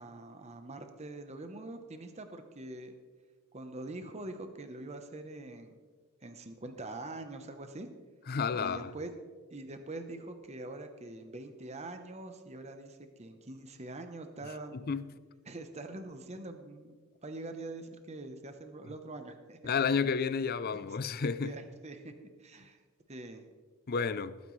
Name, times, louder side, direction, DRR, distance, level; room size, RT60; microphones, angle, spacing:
voice 1, 0.0-2.9 3.5-5.7 6.2-7.9 8.5-9.1 9.5-14.8 15.5-17.0 17.2-19.7 20.7-20.8 21.4-22.8 23.1-23.5, right 2 dB, 30° right, 0.9 m, -44 dB
voice 2, 8.3-8.9 14.7-15.1 19.6-21.5 23.9-24.4, left 5 dB, 45° left, 0.4 m, -31 dB
19.5 x 9.5 x 3.2 m
head